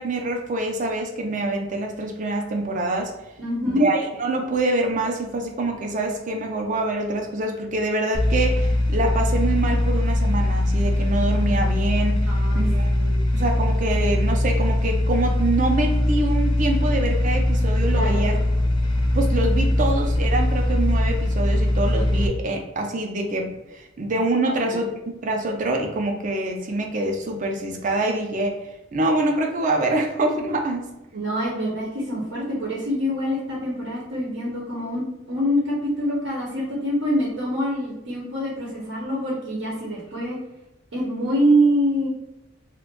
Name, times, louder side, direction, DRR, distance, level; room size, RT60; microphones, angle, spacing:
voice 1, 0.0-3.1 3.6-12.9 13.3-18.4 19.1-24.9 25.2-28.6 28.9-30.9, right 2 dB, 40° right, 3 dB, 0.4 m, -25 dB
voice 2, 3.4-3.8 12.3-12.6 12.9-13.2 17.9-18.2 24.4-24.8 31.1-40.4 40.9-42.1, equal, 85° right, -5 dB, 0.8 m, -25 dB
sound 1, 8.1-22.3, left 1 dB, 25° left, 0.5 m, -21 dB
2.5 x 2.2 x 3.7 m, 0.95 s
head